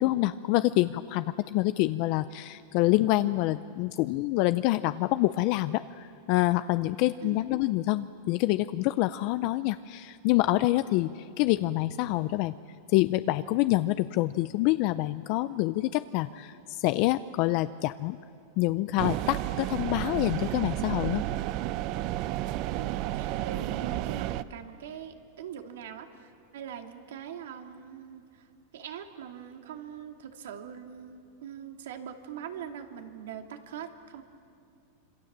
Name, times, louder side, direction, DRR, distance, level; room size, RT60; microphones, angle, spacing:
voice 1, 0.0-12.5 12.9-18.2 18.6-21.2, left 17 dB, 50° left, 12 dB, 0.5 m, -26 dB
sound 1, 19.0-24.4, right 14 dB, 45° right, 0.7 m, -31 dB
voice 2, 22.7-28.5 28.7-34.2, right 8 dB, 80° right, 4 dB, 2.5 m, -42 dB
26.5 x 25.0 x 7.5 m, 2.5 s
supercardioid pair, 140°, 0 cm